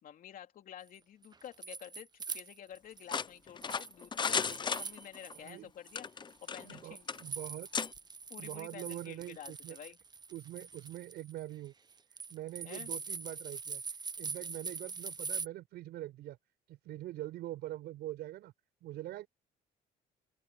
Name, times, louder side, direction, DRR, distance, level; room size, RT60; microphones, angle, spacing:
voice 1, 0.0-6.1 6.4-7.1 8.3-10.0 12.6-12.9, left 10 dB, 55° left, 3.5 m, -50 dB
sound 1, 1.2-3.3 3.6-5.5 5.9-15.5, right 5 dB, 25° right, 1.0 m, -43 dB
sound 2, 3.1-5.3 5.9-6.8 7.1-7.2 7.7-7.9, left 6 dB, 25° left, 0.7 m, -35 dB
voice 2, 5.4-5.7 6.5-7.7 8.4-9.8 10.3-11.7 12.3-13.8 14.2-16.4 16.7-18.5 18.8-19.3, right 15 dB, 75° right, 5.0 m, -44 dB
open air
cardioid pair, 110°, 17 cm